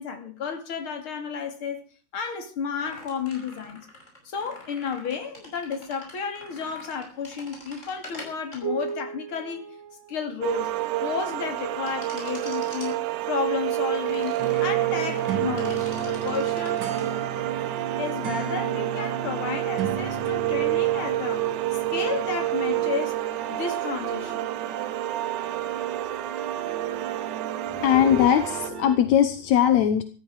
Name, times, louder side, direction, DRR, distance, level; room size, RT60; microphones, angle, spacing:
voice 1, 0.0-1.8 2.1-3.9 4.2-9.6 10.1-16.8 18.0-21.5 21.9-23.2 23.5-24.5, left 6 dB, 35° left, 2.9 m, -32 dB
sound 1, 2.8-10.6 11.9-12.9 13.9-17.1, right 3 dB, 20° left, 5.8 m, -41 dB
sound 2, 10.4-28.7, right 15 dB, 80° right, 1.8 m, -29 dB
sound 3, 14.4-29.0, right 6 dB, 50° right, 1.5 m, -35 dB
voice 2, 27.7-30.0, left 9 dB, 70° left, 1.8 m, -20 dB
15.5 x 14.0 x 4.9 m
omnidirectional pair, 4.5 m